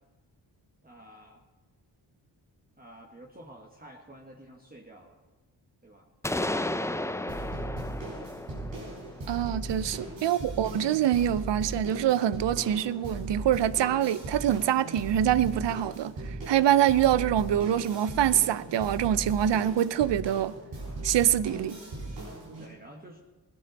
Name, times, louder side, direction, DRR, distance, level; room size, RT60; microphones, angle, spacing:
voice 1, 0.8-1.4 2.8-5.2 5.8-6.1 10.2-10.4 22.6-23.2, right 1 dB, 20° right, 1.5 m, -51 dB
sound 1, 6.2-10.0, left 1 dB, 5° left, 0.6 m, -34 dB
sound 2, 7.3-22.6, right 2 dB, 85° right, 4.8 m, -38 dB
voice 2, 9.3-20.6 21.0-21.8, right 11 dB, 65° right, 0.6 m, -25 dB
17.0 x 11.0 x 4.1 m
supercardioid pair, 45°, 45 cm